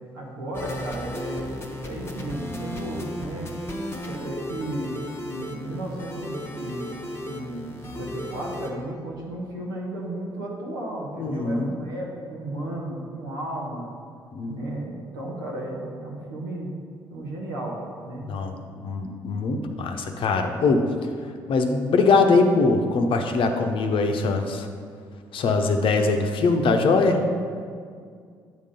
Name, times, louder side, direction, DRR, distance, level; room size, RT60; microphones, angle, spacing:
voice 1, 0.0-3.5 4.0-6.9 7.3-13.9 14.4-16.7 17.1-18.3, right 1 dB, 85° right, -3 dB, 1.2 m, -34 dB
sound 1, 0.5-8.7, left 1 dB, 20° left, 1.1 m, -35 dB
voice 2, 11.2-11.7 14.3-14.7 18.3-20.9 21.5-24.7 25.3-27.3, left 3 dB, 55° left, 5 dB, 0.8 m, -22 dB
8.0 x 3.7 x 5.6 m, 2.2 s
hypercardioid pair, 50°, 11 cm